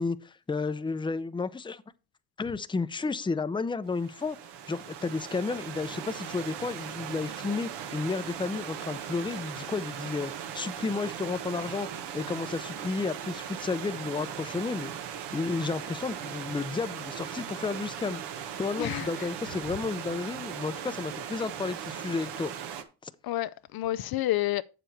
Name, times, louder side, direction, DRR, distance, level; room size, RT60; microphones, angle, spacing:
voice 1, 0.0-1.8 2.4-4.4 4.7-11.9 12.1-22.5 23.0-23.1, left 4 dB, 10° left, 0.6 m, -32 dB
Stream / Liquid, 3.9-22.8, right 8 dB, 80° right, 1.2 m, -39 dB
voice 2, 18.8-19.3 23.2-24.6, left 15 dB, 60° left, 0.5 m, -30 dB
7.7 x 7.1 x 4.5 m
cardioid pair, 90°, 41 cm